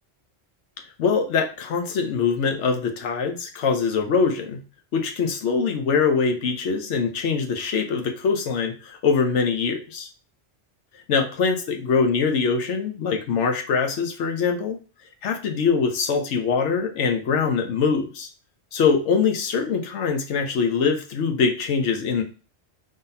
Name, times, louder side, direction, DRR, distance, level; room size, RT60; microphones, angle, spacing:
voice 1, 1.0-4.6 4.9-10.1 11.1-14.8 15.2-18.3 18.7-22.2, left 5 dB, 85° left, 4 dB, 1.0 m, -23 dB
3.6 x 3.5 x 2.7 m, 0.35 s
omnidirectional pair, 1.2 m